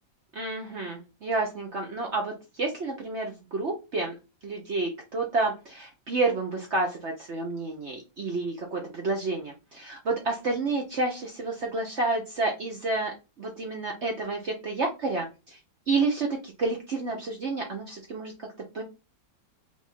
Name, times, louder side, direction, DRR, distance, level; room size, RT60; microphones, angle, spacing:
voice 1, 0.3-4.1 4.4-15.6 15.9-18.5 18.7-18.8, right 3 dB, 55° right, 1 dB, 0.8 m, -30 dB
3.6 x 3.3 x 4.1 m, 0.28 s
omnidirectional pair, 2.1 m